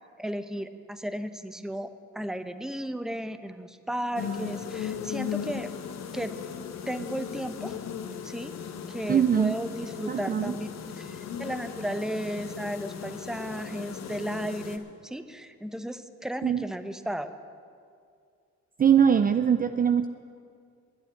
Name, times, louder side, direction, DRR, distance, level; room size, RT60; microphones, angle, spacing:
voice 1, 0.2-5.7 6.1-6.3 6.9-7.7 8.2-8.5 8.9-10.7 11.0-17.3, equal, ahead, 10 dB, 0.7 m, -34 dB
sound 1, 4.1-14.8, left 7 dB, 60° left, 1.2 m, -37 dB
voice 2, 9.1-9.5 10.1-10.5 16.4-16.6 18.8-20.1, right 8 dB, 30° right, 10 dB, 0.4 m, -22 dB
11.0 x 9.0 x 9.7 m, 2.3 s
cardioid pair, 90°, 30 cm